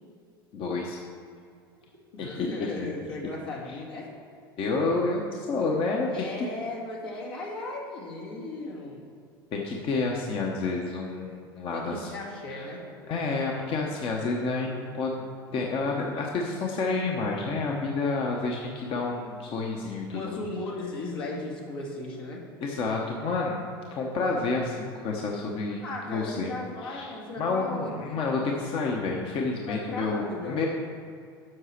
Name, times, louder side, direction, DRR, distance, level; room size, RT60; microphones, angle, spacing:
voice 1, 0.5-1.0 2.2-2.4 4.6-6.3 9.5-12.1 12.5-12.7 13.1-15.2 15.5-20.3 22.6-23.6 23.9-25.8 26.1-26.5 26.8-27.1 27.4-30.7, left 3 dB, 45° left, 0 dB, 1.0 m, -29 dB
voice 2, 2.1-4.1 6.1-9.1 11.7-12.8 20.1-22.4 25.8-28.2 29.6-30.7, left 2 dB, 75° left, -3 dB, 2.2 m, -36 dB
7.8 x 5.7 x 5.9 m, 2.3 s
hypercardioid pair, 80°, 12 cm